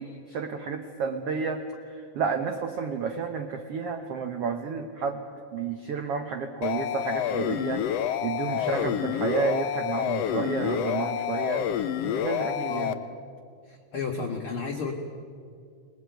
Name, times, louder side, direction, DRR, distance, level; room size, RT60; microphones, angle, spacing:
voice 1, 0.0-5.2 5.5-11.6 12.0-13.0, right 6 dB, 65° right, 6 dB, 1.6 m, -31 dB
sound 1, 6.6-12.9, left 10 dB, 80° left, 1.4 m, -28 dB
voice 2, 8.6-9.0 12.7-12.9 13.7-14.9, left 4 dB, 50° left, 1 dB, 2.0 m, -33 dB
25.5 x 19.5 x 9.1 m, 2.3 s
omnidirectional pair, 4.0 m